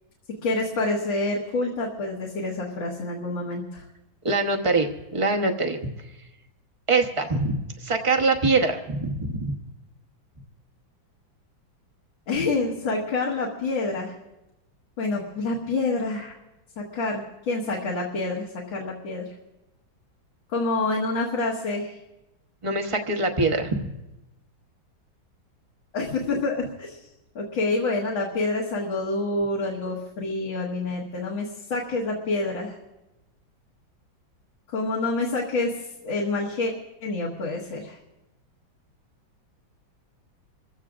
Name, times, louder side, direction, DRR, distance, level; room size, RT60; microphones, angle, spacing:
voice 1, 0.4-3.8 12.3-14.1 15.0-16.3 16.8-19.2 20.5-22.0 25.9-27.0 27.4-32.8 34.7-36.7 37.0-38.0, left 3 dB, 75° left, -5 dB, 2.3 m, -27 dB
voice 2, 4.2-5.8 6.9-9.5 22.6-23.9, right 3 dB, 25° right, 3 dB, 0.7 m, -24 dB
27.0 x 15.0 x 2.5 m, 0.99 s
omnidirectional pair, 2.1 m